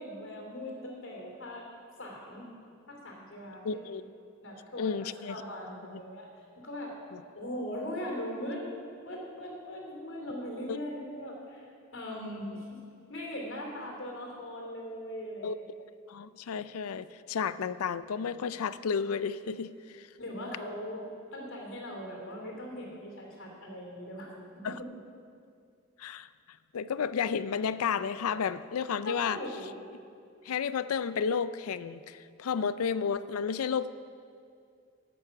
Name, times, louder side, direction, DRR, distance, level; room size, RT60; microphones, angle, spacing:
voice 1, 0.0-1.6 2.0-2.4 2.9-3.8 4.4-6.3 6.6-7.0 7.3-8.6 9.0-11.6 11.9-12.8 13.1-15.6 20.2-24.9 29.0-29.8, equal, 65° left, -1 dB, 2.9 m, -40 dB
voice 2, 3.6-4.0 4.8-5.4 7.1-7.2 10.7-10.8 12.2-12.6 15.4-15.6 16.1-20.1 24.6-24.8 26.0-26.3 26.7-29.4 30.5-33.9, left 6 dB, 85° left, 15 dB, 0.4 m, -32 dB
12.5 x 8.9 x 5.9 m, 2.4 s
head